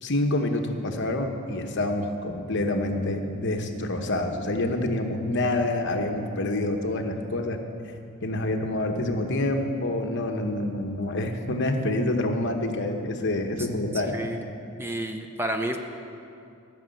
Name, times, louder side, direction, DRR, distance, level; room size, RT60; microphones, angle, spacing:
voice 1, 0.0-7.6 8.2-14.1, left 1 dB, 55° left, 4 dB, 1.0 m, -27 dB
voice 2, 13.9-14.4 14.8-15.8, right 1 dB, 10° right, 5 dB, 0.6 m, -30 dB
15.5 x 6.3 x 7.8 m, 2.6 s
head